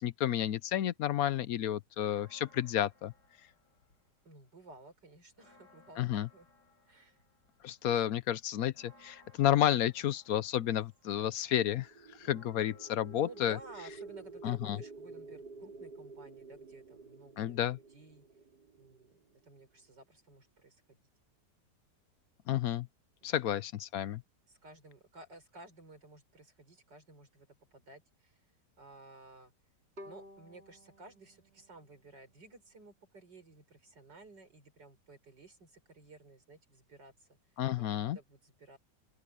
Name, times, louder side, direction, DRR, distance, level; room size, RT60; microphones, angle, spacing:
voice 1, 0.0-3.1 6.0-6.3 7.6-11.9 12.2-13.6 14.4-14.8 17.4-17.8 22.5-22.9 23.2-24.2 37.6-38.2, left 11 dB, 65° left, 1.0 m, -31 dB
Church bell, 1.9-4.3 4.7-4.8 5.1-15.2, left 3 dB, 85° left, 6.2 m, -65 dB
voice 2, 4.2-6.5 6.9-7.2 7.9-8.1 13.1-17.6 17.9-18.3 18.8-21.0 23.2-23.6 24.5-28.5 28.8-29.5 30.0-37.4 37.7-38.8, right 2 dB, 85° right, 6.2 m, -55 dB
sound 1, 11.6-19.7, right 4 dB, 70° right, 5.4 m, -51 dB
Bowed string instrument, 30.0-33.0, left 1 dB, 35° right, 3.3 m, -55 dB
open air
omnidirectional pair, 1.8 m